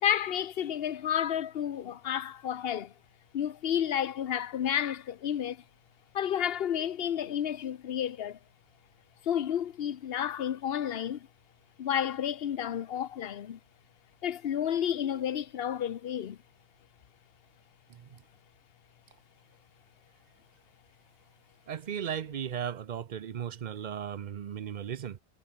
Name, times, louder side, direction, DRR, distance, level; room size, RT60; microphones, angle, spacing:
voice 1, 0.0-2.9 3.3-5.6 6.1-8.4 9.2-11.3 11.8-13.6 14.2-16.4, left 9 dB, 65° left, 1.0 m, -31 dB
voice 2, 17.9-18.2 21.7-25.2, right 8 dB, 50° right, 0.7 m, -36 dB
omnidirectional pair, 1.1 m